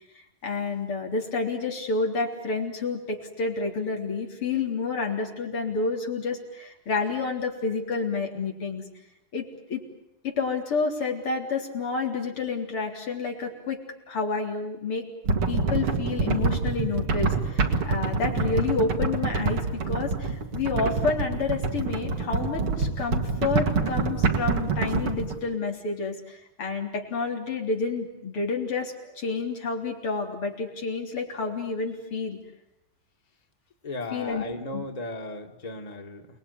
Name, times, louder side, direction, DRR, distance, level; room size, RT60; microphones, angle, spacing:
voice 1, 0.1-8.8 9.3-9.8 10.2-13.8 14.1-15.0 15.5-32.4 34.1-34.4 34.7-34.9, left 4 dB, 90° left, 1 dB, 4.5 m, -29 dB
sound 1, 15.3-25.4, right 4 dB, 85° right, 3.0 m, -26 dB
voice 2, 33.8-36.3, left 2 dB, 20° left, 4 dB, 1.9 m, -36 dB
29.0 x 20.0 x 9.9 m, 0.84 s
omnidirectional pair, 2.4 m